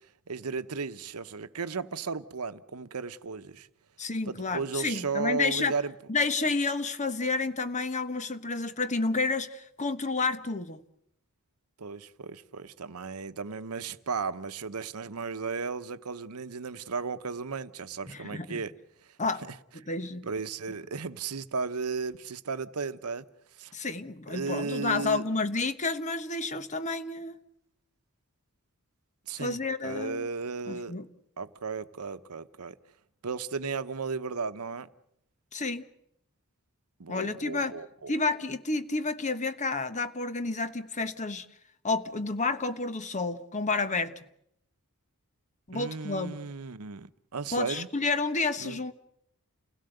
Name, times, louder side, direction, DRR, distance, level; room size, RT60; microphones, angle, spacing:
voice 1, 0.3-3.7 4.3-5.9 11.8-18.7 19.5-19.6 20.2-23.3 23.6-23.7 24.3-25.2 29.3-30.9 31.4-32.8 33.2-34.9 37.0-38.1 45.7-47.9 48.6-48.8, right 4 dB, 85° right, 0.9 m, -35 dB
voice 2, 4.0-5.7 6.1-10.8 18.1-18.6 19.2-19.4 19.9-20.2 23.7-27.3 29.4-30.3 30.7-31.0 35.5-35.8 37.1-37.7 38.1-41.4 41.8-44.1 45.7-46.4 47.5-48.9, left 3 dB, 35° left, 1.2 m, -30 dB
29.5 x 17.0 x 7.9 m
head